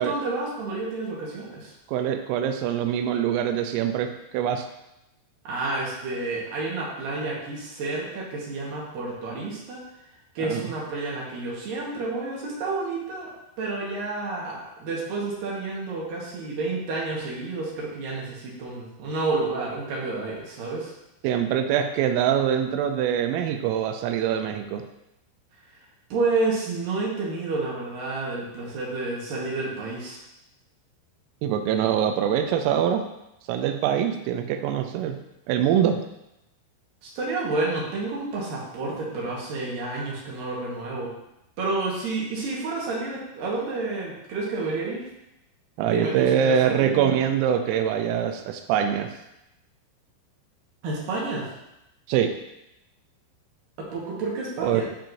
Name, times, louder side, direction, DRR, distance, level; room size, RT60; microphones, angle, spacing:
voice 1, 0.0-1.7 5.4-9.8 10.4-13.3 13.6-20.9 26.1-30.2 37.0-41.1 41.6-45.1 45.8-47.1 50.8-51.5 53.8-54.9, right 3 dB, 70° right, -5 dB, 2.2 m, -30 dB
voice 2, 1.9-4.7 10.4-10.6 21.2-24.8 31.4-33.0 33.5-35.2 35.5-36.0 45.8-49.1 52.1-52.3 54.6-54.9, right 9 dB, 85° right, 7 dB, 3.1 m, -24 dB
10.0 x 4.5 x 2.6 m, 0.88 s
omnidirectional pair, 5.9 m